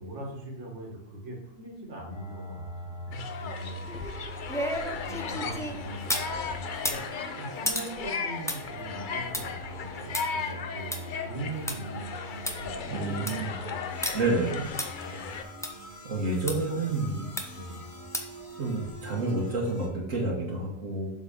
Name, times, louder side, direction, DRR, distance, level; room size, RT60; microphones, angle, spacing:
voice 1, 0.0-4.2 4.9-14.3 14.8-15.3 16.5-17.9, right 1 dB, 65° right, -1 dB, 1.8 m, -42 dB
sound 1, 2.1-19.9, equal, 85° left, 3.0 m, -43 dB
sound 2, 3.1-15.4, left 6 dB, 50° left, 0.6 m, -37 dB
sound 3, 3.8-6.3 6.7-11.8 12.1-12.2 12.5-12.6 13.0-13.4 14.0-14.1 14.8-14.9 15.6-15.7 16.5-16.6 17.4-17.7 18.1-18.4 18.8-18.9, equal, 5° left, 0.5 m, -34 dB
voice 2, 12.9-13.5 14.1-14.7 16.1-17.2 18.6-21.1, right 2 dB, 80° right, -3 dB, 1.7 m, -29 dB
7.3 x 4.0 x 5.1 m, 0.80 s
omnidirectional pair, 1.3 m